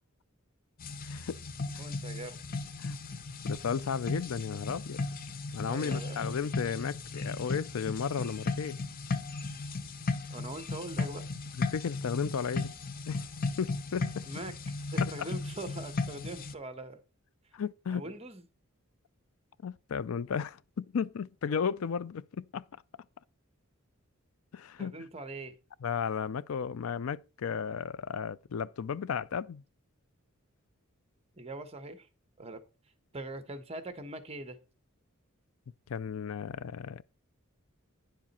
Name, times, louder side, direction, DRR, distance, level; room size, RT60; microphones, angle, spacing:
sound 1, 0.8-16.5, left 3 dB, 45° left, 0.8 m, -36 dB
voice 1, 1.0-1.4 1.7-1.8 2.8-3.0 3.5-5.0 5.5-8.8 11.5-12.7 13.1-13.2 13.6-14.2 15.0-15.3 17.5-18.1 19.6-22.6 24.5-25.0 25.8-29.6 35.9-37.0, left 6 dB, 80° left, 0.4 m, -34 dB
voice 2, 1.8-2.4 5.6-6.2 10.3-11.2 14.2-14.5 14.9-17.0 17.9-18.4 24.8-25.5 31.4-32.1 32.4-32.6 33.1-34.6, right 2 dB, 30° right, 1.3 m, -42 dB
10.5 x 7.3 x 4.3 m
head